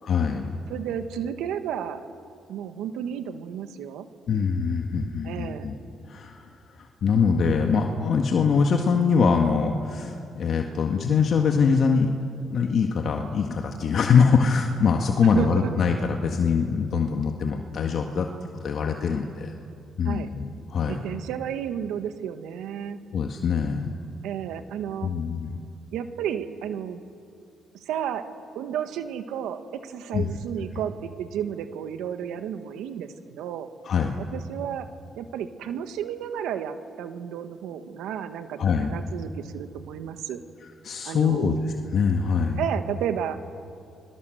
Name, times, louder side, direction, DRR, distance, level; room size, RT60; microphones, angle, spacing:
voice 1, 0.0-0.6 4.3-5.7 6.0-12.1 12.5-18.3 18.6-19.5 20.0-21.0 23.1-23.9 25.0-25.6 30.1-30.3 33.8-34.2 38.6-39.0 40.8-42.6, left 5 dB, 60° left, 3 dB, 1.8 m, -23 dB
voice 2, 0.7-2.0 2.5-4.1 5.2-5.7 15.3-15.7 20.0-20.3 20.9-23.0 24.2-25.1 25.9-27.0 27.7-28.2 28.5-33.7 34.2-34.9 35.2-40.4 41.0-41.6 42.6-43.4, right 9 dB, 90° right, 9 dB, 1.5 m, -32 dB
29.0 x 23.0 x 7.9 m, 2.6 s
cardioid pair, 90°, 0 cm